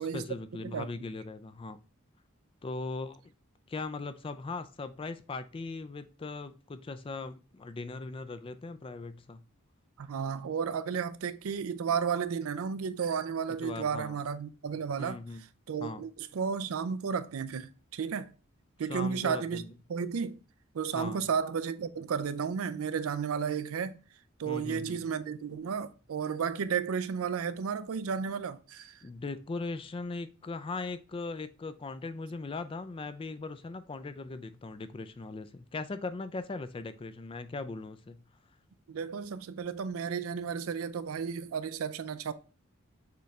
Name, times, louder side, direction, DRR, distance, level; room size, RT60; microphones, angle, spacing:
voice 1, 0.0-1.8 2.6-3.2 3.7-9.4 13.6-14.2 15.0-15.4 15.8-16.0 18.9-19.7 20.9-21.2 24.5-25.0 29.0-38.2, left 3 dB, 25° left, 0.3 m, -39 dB
voice 2, 10.0-15.2 15.7-18.3 18.8-19.6 19.9-20.4 20.7-23.9 24.4-29.0 38.9-42.3, right 6 dB, 80° right, 0.4 m, -33 dB
6.7 x 3.2 x 2.4 m
head